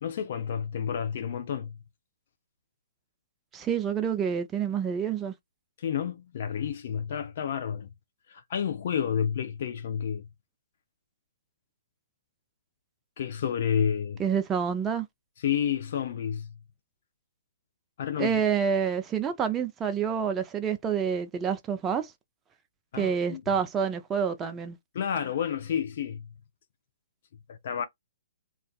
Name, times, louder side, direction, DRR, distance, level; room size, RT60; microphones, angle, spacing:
voice 1, 0.0-1.8 5.8-7.9 8.3-10.3 13.2-14.2 15.4-16.5 18.0-18.4 22.9-23.4 24.9-26.3 27.5-27.9, left 8 dB, 55° left, 0.5 m, -30 dB
voice 2, 3.5-5.3 14.2-15.1 18.2-22.1 23.0-24.8, right 7 dB, 15° right, 0.4 m, -28 dB
2.4 x 2.4 x 2.3 m
figure-of-eight pair, 125°, 0 cm